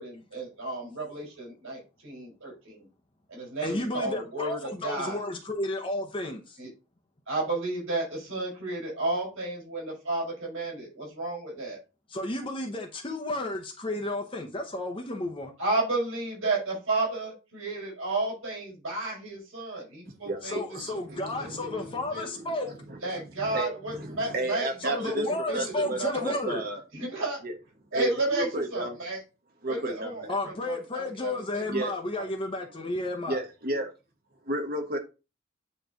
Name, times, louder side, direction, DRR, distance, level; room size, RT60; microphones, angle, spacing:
voice 1, 0.0-2.9 3.3-5.2 6.6-6.7 7.3-11.8 15.6-20.6 20.9-22.3 23.0-26.1 26.9-27.4 27.9-29.2 29.7-31.7 32.2-32.3, right 2 dB, 80° right, 4.2 m, -32 dB
voice 2, 3.6-6.6 12.1-15.5 20.4-22.7 24.8-26.6 30.3-33.4, left 2 dB, 25° left, 0.8 m, -32 dB
voice 3, 20.2-25.3 25.5-26.8 27.4-27.5 27.9-29.0 29.6-30.3 31.7-31.9 33.3-33.9 34.4-35.0, right 1 dB, 45° right, 1.2 m, -33 dB
9.1 x 3.2 x 3.8 m
head